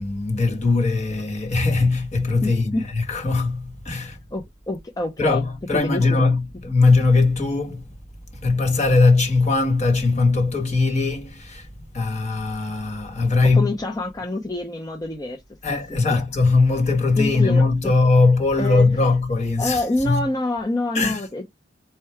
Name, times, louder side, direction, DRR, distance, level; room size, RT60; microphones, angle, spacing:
voice 1, 0.0-4.2 5.2-7.8 8.3-11.7 11.9-13.7 15.6-20.3 20.9-21.2, left 3 dB, 40° left, 1.2 m, -20 dB
voice 2, 2.4-2.9 4.0-5.4 5.7-6.2 13.4-15.4 15.7-16.2 17.2-17.9 18.6-18.9 19.6-21.4, left 2 dB, 20° left, 0.5 m, -27 dB
4.6 x 2.2 x 4.3 m
head